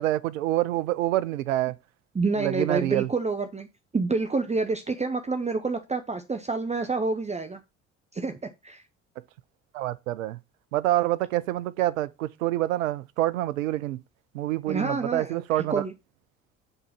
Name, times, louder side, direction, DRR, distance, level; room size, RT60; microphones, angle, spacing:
voice 1, 0.0-1.7 2.4-3.1 9.7-10.4 10.7-14.0 14.3-15.8, right 15 dB, 80° right, 0.6 m, -26 dB
voice 2, 2.1-3.7 3.9-7.6 8.1-8.4 8.6-8.8 14.7-15.4 15.7-15.9, right 3 dB, 15° right, 0.9 m, -28 dB
8.0 x 3.9 x 6.0 m
figure-of-eight pair, 50°, 39 cm